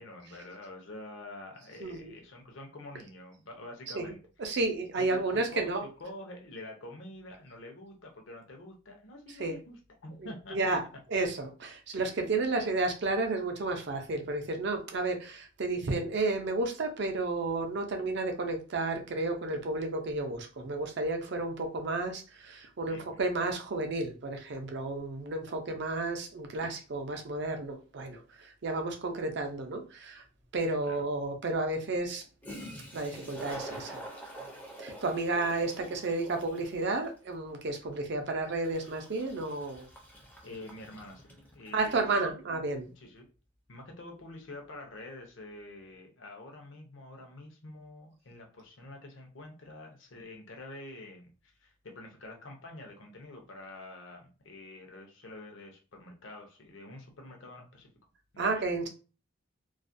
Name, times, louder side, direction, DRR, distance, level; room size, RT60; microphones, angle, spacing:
voice 1, 0.0-4.2 5.0-5.7 6.0-10.8 12.5-12.7 22.9-23.3 30.9-31.0 40.4-42.3 42.8-43.3 43.7-57.9 58.3-58.5 58.8-58.9, left 1 dB, 60° left, 2 dB, 0.6 m, -47 dB
voice 2, 1.8-2.1 4.0-4.1 4.4-5.8 9.4-9.6 10.2-10.8 11.1-30.2 30.5-32.2 32.9-34.0 34.8-39.8 41.7-42.9 58.4-58.9, right 3 dB, 55° right, 4 dB, 0.5 m, -32 dB
Toilet flush, 30.4-30.5 32.1-32.2 32.4-41.8, right 1 dB, 10° left, 0.4 m, -46 dB
2.4 x 2.1 x 2.5 m, 0.35 s
head